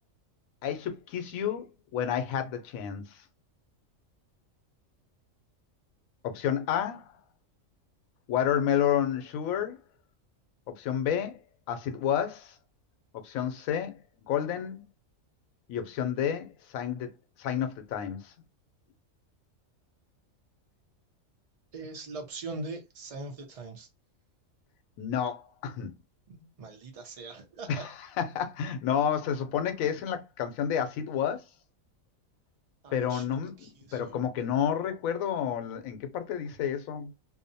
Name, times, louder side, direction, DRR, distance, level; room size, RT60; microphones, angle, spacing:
voice 1, 0.6-3.2 6.2-7.1 8.3-9.8 10.7-11.4 11.7-12.5 13.1-14.0 14.3-14.9 15.7-17.1 17.4-18.3 25.0-25.9 27.7-31.4 32.9-37.1, left 9 dB, 90° left, 1.0 m, -30 dB
voice 2, 21.7-23.9 26.3-27.9 32.8-34.2, right 3 dB, 55° right, 0.4 m, -42 dB
2.7 x 2.0 x 2.6 m
omnidirectional pair, 1.4 m